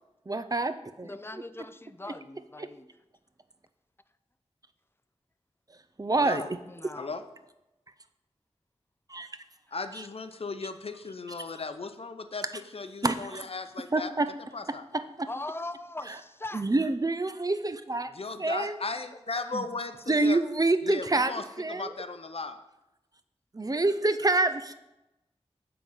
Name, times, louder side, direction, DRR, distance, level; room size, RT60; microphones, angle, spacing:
voice 1, 0.3-1.4 2.6-2.7 6.0-6.4 6.8-6.9 9.1-9.3 13.0-13.4 13.9-14.3 14.7-15.3 16.1-16.2 16.5-18.1 18.4-18.8 19.5-19.7 20.1-21.3 21.6-21.9 23.5-24.7, right 2 dB, 35° right, 11 dB, 0.6 m, -27 dB
voice 2, 1.0-2.9 6.7-7.1 15.3-16.6 19.3-19.5, left 2 dB, 20° left, 13 dB, 0.5 m, -40 dB
voice 3, 9.7-14.1 14.5-14.8 18.1-20.4 20.8-22.6, left 3 dB, 60° left, 9 dB, 0.7 m, -37 dB
9.0 x 3.9 x 7.1 m, 0.94 s
cardioid pair, 45°, 11 cm